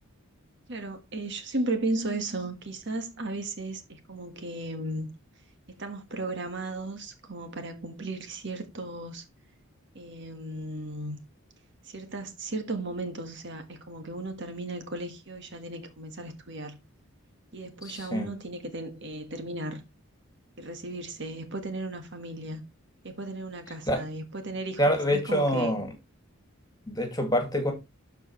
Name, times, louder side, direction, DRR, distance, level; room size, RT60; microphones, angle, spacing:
voice 1, 0.7-5.1 5.8-9.2 9.9-11.2 11.8-16.8 17.5-19.8 20.6-22.6 23.0-25.8, right 2 dB, 55° right, 1.5 m, -35 dB
voice 2, 17.9-18.3 23.9-24.0 24.8-25.9 26.9-27.7, equal, 15° left, 2.1 m, -26 dB
12.5 x 4.7 x 3.1 m
head